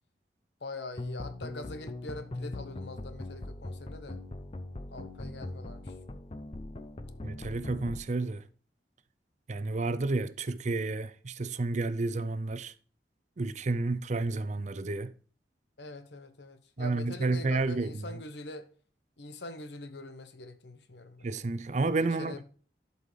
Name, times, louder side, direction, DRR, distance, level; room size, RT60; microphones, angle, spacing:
voice 1, 0.6-4.2 4.9-5.9 15.8-18.7 19.2-21.3 22.0-22.4, left 2 dB, 75° left, 1.1 m, -43 dB
sound 1, 1.0-8.0, left 2 dB, 30° left, 0.6 m, -41 dB
voice 2, 7.2-8.4 9.5-12.7 13.4-15.1 16.8-18.0 21.2-22.4, right 3 dB, 40° right, 0.5 m, -31 dB
12.0 x 5.5 x 3.2 m
head